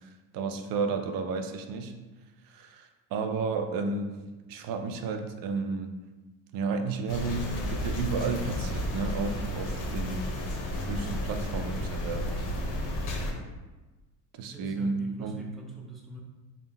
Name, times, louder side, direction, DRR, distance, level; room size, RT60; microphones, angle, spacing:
voice 1, 0.0-1.9 2.5-4.2 4.5-5.9 6.5-10.3 10.9-12.4 14.4-15.4, right 4 dB, 65° right, 6 dB, 0.5 m, -32 dB
sound 1, 7.1-13.3, left 1 dB, 55° left, 0.8 m, -32 dB
voice 2, 14.5-16.2, right 1 dB, ahead, -1 dB, 0.4 m, -43 dB
3.7 x 2.4 x 4.0 m, 1.2 s
cardioid pair, 125°, 38 cm